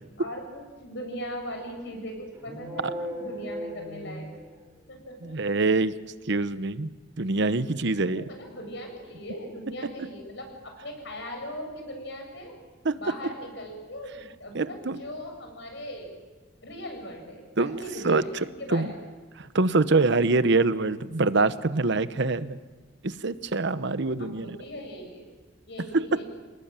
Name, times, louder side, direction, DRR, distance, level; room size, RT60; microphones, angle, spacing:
voice 1, 0.2-4.3 4.9-5.6 8.0-12.5 13.0-16.1 16.6-18.3 18.6-19.0 24.2-25.3 25.7-26.2, equal, 65° left, 3 dB, 7.6 m, -39 dB
sound 1, 2.3-4.9, equal, 15° right, 5.5 m, -37 dB
voice 2, 5.2-5.9 6.3-6.9 7.2-8.2 12.8-12.9 14.5-15.0 17.6-17.8 18.0-18.2 18.7-18.9 19.5-22.6 23.0-24.6 25.9-26.2, right 3 dB, 65° right, 13 dB, 0.9 m, -24 dB
28.0 x 19.5 x 9.0 m, 1.3 s
head